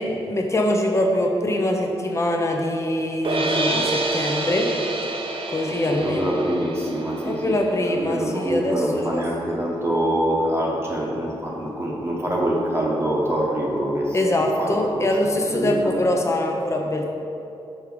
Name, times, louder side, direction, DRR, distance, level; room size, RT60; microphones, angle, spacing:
voice 1, 0.0-4.7 5.5-6.2 7.2-9.3 14.1-17.1, left 1 dB, 25° left, 1 dB, 0.8 m, -23 dB
sound 1, 3.2-9.4, right 2 dB, 55° right, 0.6 m, -28 dB
voice 2, 5.7-7.6 7.9-14.2 14.6-15.9, right 1 dB, 20° right, -4 dB, 1.0 m, -25 dB
5.5 x 4.9 x 4.6 m, 2.7 s
wide cardioid pair, 105°, 11 cm